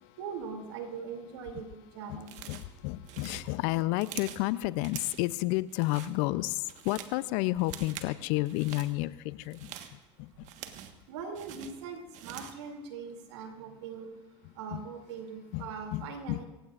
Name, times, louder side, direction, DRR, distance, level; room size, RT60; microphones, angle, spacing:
voice 1, 0.2-1.7 1.9-2.4 11.1-14.1 14.6-16.5, right 5 dB, 75° right, 3 dB, 2.8 m, -41 dB
voice 2, 2.1-10.5 14.7-14.8 15.5-16.4, left 19 dB, 65° left, 17 dB, 0.6 m, -31 dB
sound 1, 2.2-2.7 3.0-4.5 4.8-5.3 5.7-6.1 6.5-7.2 7.6-8.1 8.4-8.9 9.4-11.0 11.3-12.6, right 11 dB, 55° right, 1.5 m, -45 dB
27.0 x 16.0 x 2.5 m, 1.1 s
hypercardioid pair, 80°, 15 cm